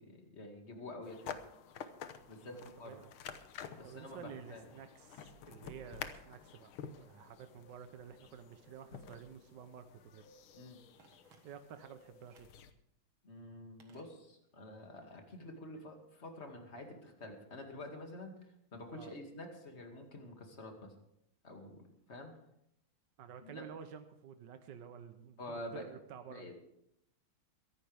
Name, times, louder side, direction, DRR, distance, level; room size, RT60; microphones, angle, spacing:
voice 1, 0.0-1.4 2.3-3.0 3.8-4.6 10.5-10.8 13.2-18.3 18.7-20.9 21.4-22.3 23.4-23.6 25.4-25.9 26.3-26.5, left 1 dB, 35° left, 3 dB, 2.5 m, -48 dB
sound 1, 1.0-12.7, left 7 dB, 90° left, 1.8 m, -50 dB
voice 2, 2.4-3.1 3.8-10.3 11.4-12.5 18.9-19.1 23.2-26.5, right 7 dB, 65° right, 8 dB, 1.4 m, -51 dB
Telephone, 11.0-11.9 12.3-12.7 13.8-14.7 14.9-15.0, right 5 dB, 85° right, 2.4 m, -66 dB
22.5 x 11.5 x 3.5 m, 0.78 s
omnidirectional pair, 2.2 m